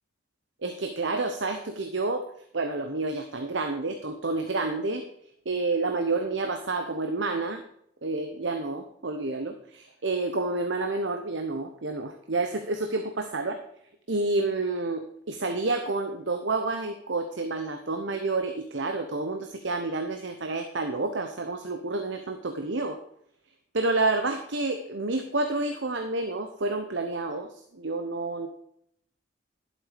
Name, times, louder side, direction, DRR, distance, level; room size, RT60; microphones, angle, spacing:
voice 1, 0.6-2.2 2.5-5.0 5.5-7.6 8.0-13.6 14.1-23.0 23.7-27.5 27.7-28.5, right 3 dB, 75° right, 6 dB, 0.9 m, -29 dB
11.5 x 7.7 x 5.1 m, 0.70 s
head